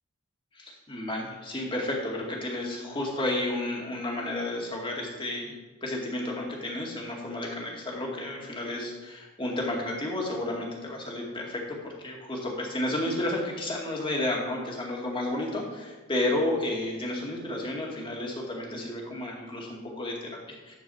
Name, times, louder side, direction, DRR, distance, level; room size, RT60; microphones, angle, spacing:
voice 1, 0.5-5.5 5.8-20.7, left 1 dB, 25° left, -1 dB, 2.1 m, -32 dB
12.0 x 4.7 x 7.0 m, 1.2 s
head